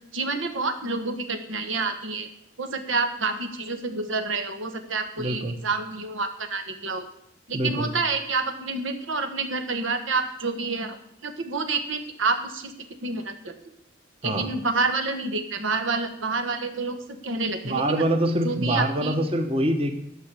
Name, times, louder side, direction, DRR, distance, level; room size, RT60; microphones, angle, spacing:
voice 1, 0.1-2.3 2.6-7.0 7.5-11.0 11.2-12.7 13.0-13.6 14.2-17.0 17.2-18.0 18.4-19.1, right 3 dB, 80° right, 7 dB, 1.4 m, -28 dB
voice 2, 5.2-5.6 7.5-7.9 14.2-14.5 17.6-20.0, right 1 dB, 30° right, 5 dB, 1.1 m, -25 dB
12.5 x 6.0 x 8.2 m, 0.75 s
head